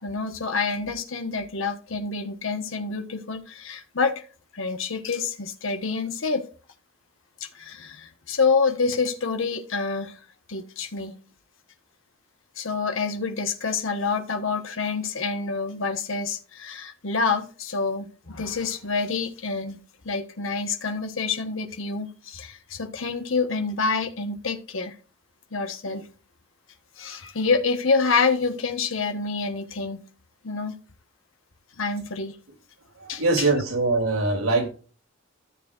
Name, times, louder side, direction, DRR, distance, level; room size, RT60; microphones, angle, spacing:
voice 1, 0.0-4.2 4.5-6.4 7.4-10.2 10.5-11.1 12.5-19.8 20.0-25.0 25.5-26.1 27.0-30.0 30.4-30.7 31.8-32.3 33.1-33.5, left 4 dB, 70° left, 5 dB, 1.3 m, -27 dB
voice 2, 33.0-34.7, right 3 dB, 85° right, 1 dB, 3.3 m, -23 dB
14.0 x 7.0 x 2.5 m, 0.36 s
head